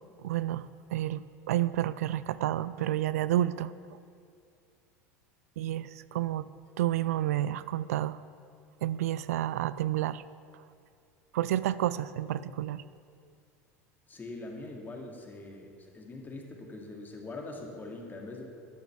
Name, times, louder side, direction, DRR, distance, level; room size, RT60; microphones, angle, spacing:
voice 1, 0.2-3.7 5.6-6.5 6.8-8.2 8.8-10.2 11.3-12.8, right 13 dB, 80° right, 16 dB, 0.3 m, -30 dB
voice 2, 14.1-18.4, left 2 dB, 25° left, 1 dB, 2.4 m, -43 dB
12.0 x 7.9 x 7.2 m, 2.4 s
hypercardioid pair, 85°, 8 cm